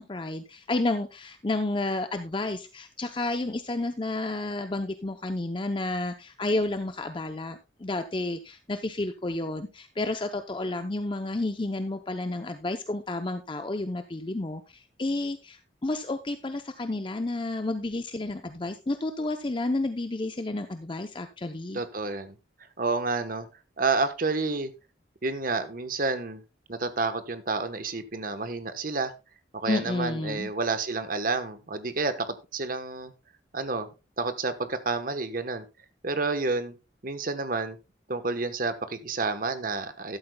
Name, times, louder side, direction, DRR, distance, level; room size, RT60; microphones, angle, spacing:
voice 1, 0.0-21.8 29.7-30.5, left 2 dB, 25° left, 8 dB, 0.6 m, -31 dB
voice 2, 21.7-22.3 22.8-23.5 23.8-24.7 25.2-26.4 26.7-29.1 29.5-33.1 33.5-33.9 34.2-35.6 36.0-36.7 37.0-37.8 38.1-40.2, right 3 dB, 50° right, 10 dB, 1.1 m, -29 dB
13.0 x 12.0 x 2.2 m, 0.27 s
head